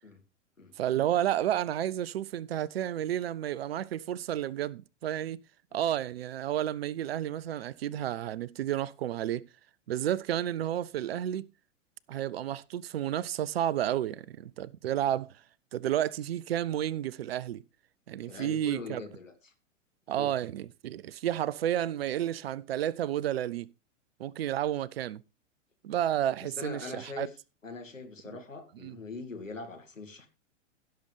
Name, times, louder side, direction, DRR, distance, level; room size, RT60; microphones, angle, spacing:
voice 1, 0.8-5.4 5.7-9.4 9.9-11.5 12.1-15.3 15.7-17.6 18.1-19.0 20.1-23.7 24.2-25.2 25.8-27.3 28.8-29.0, right 11 dB, 55° right, 0.5 m, -31 dB
voice 2, 18.3-19.5 20.2-20.4 26.4-27.3 27.6-30.3, left 4 dB, 85° left, 2.0 m, -42 dB
16.0 x 6.7 x 3.3 m
figure-of-eight pair, 100°, 38 cm